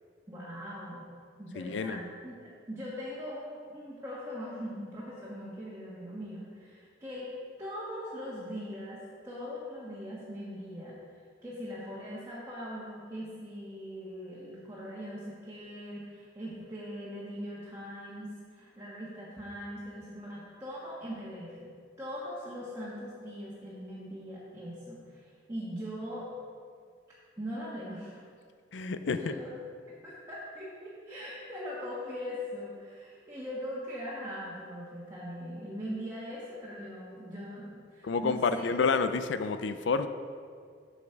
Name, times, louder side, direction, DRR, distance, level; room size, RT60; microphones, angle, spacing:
voice 1, 0.3-1.1 1.4-7.3 7.6-11.0 11.4-21.7 22.0-26.3 27.4-28.2 29.2-29.5 29.9-38.6, equal, 15° right, -8 dB, 1.5 m, -41 dB
voice 2, 1.6-2.0 28.7-29.3 38.0-40.1, left 4 dB, 75° left, 10 dB, 0.5 m, -29 dB
8.1 x 7.4 x 4.6 m, 2.1 s
head